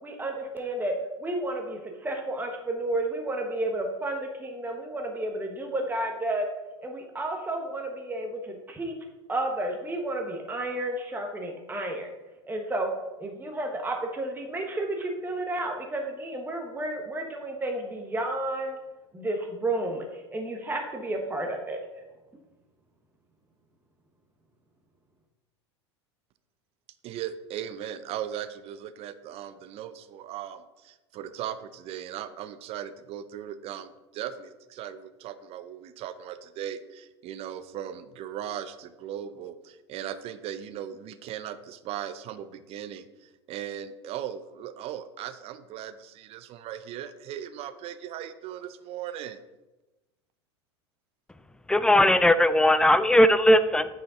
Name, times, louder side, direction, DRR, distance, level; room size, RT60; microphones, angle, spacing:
voice 1, 0.0-0.9 1.2-6.5 6.8-8.9 9.3-12.1 12.5-12.9 13.2-18.8 19.1-22.0, right 1 dB, 15° right, 2 dB, 1.2 m, -31 dB
voice 2, 27.0-49.4, right 10 dB, 45° right, 12 dB, 0.6 m, -38 dB
voice 3, 51.7-53.9, left 1 dB, 5° left, 13 dB, 0.4 m, -19 dB
8.6 x 5.1 x 3.8 m, 1.1 s
hypercardioid pair, 85°, 15 cm